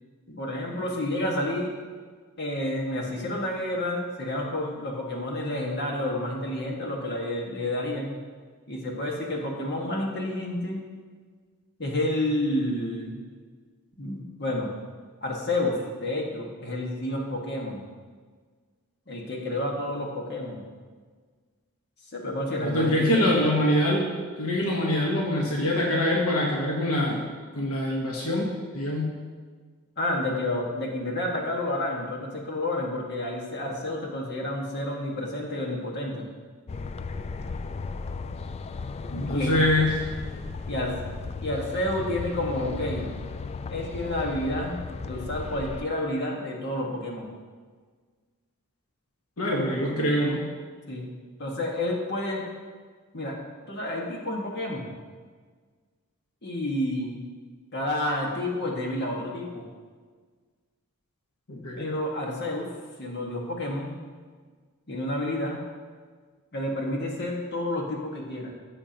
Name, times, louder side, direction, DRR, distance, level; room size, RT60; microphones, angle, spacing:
voice 1, 0.3-1.7 2.4-8.1 8.7-10.8 11.8-13.2 14.0-14.7 15.2-17.8 19.1-20.7 22.1-23.4 30.0-36.3 39.1-39.6 40.7-41.0 41.4-43.1 43.7-47.3 50.9-51.1 51.4-52.5 53.1-53.4 53.7-54.9 56.4-57.2 57.7-59.7 61.8-62.7 63.0-63.9 64.9-65.6 66.5-68.5, left 1 dB, 50° left, -1 dB, 1.7 m, -30 dB
voice 2, 22.6-24.1 24.4-27.2 27.6-29.1 39.1-40.0 49.4-50.4 61.5-61.9, left 1 dB, 70° left, -2 dB, 1.3 m, -24 dB
sound 1, 36.7-45.8, left 4 dB, 30° left, 0.3 m, -35 dB
15.5 x 7.1 x 2.9 m, 1.5 s
head